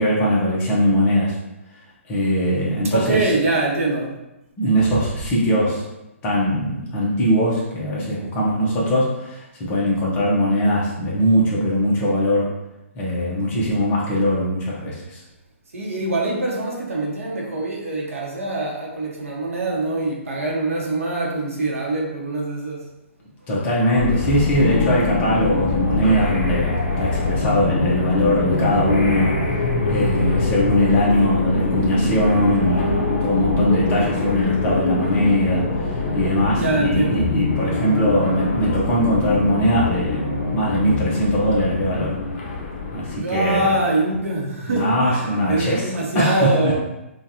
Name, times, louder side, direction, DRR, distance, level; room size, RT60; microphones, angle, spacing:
voice 1, 0.0-1.4 2.1-3.3 4.6-5.8 6.2-12.5 12.9-15.2 23.5-29.4 29.9-42.2 42.9-43.7 44.7-46.8, equal, 20° left, -5 dB, 1.0 m, -20 dB
voice 2, 2.9-4.1 15.7-22.9 36.5-37.3 43.2-46.8, right 2 dB, 80° right, -1 dB, 1.2 m, -24 dB
sound 1, 24.0-43.2, left 3 dB, 45° left, 1.0 m, -24 dB
5.1 x 2.5 x 2.8 m, 0.93 s
hypercardioid pair, 155°, 7 cm